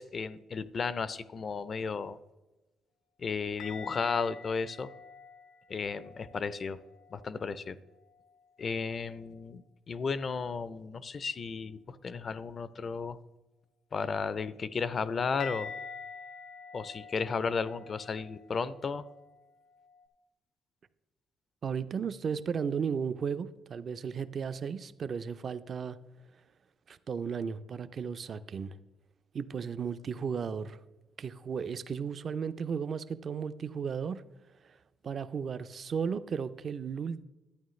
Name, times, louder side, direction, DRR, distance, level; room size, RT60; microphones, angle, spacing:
voice 1, 0.0-2.2 3.2-4.9 5.7-6.8 7.1-7.8 8.6-13.2 13.9-15.7 16.7-19.0, left 5 dB, 45° left, 16 dB, 0.5 m, -34 dB
sound 1, 3.6-7.5 7.9-8.5 15.4-20.1, left 5 dB, 90° left, 0.9 m, -47 dB
voice 2, 21.6-26.0 26.9-28.8 29.3-30.8 31.2-34.2 34.6-34.8 35.0-37.2, right 6 dB, 50° right, 13 dB, 0.5 m, -35 dB
11.5 x 8.9 x 3.1 m, 1.1 s
cardioid pair, 90°, 0 cm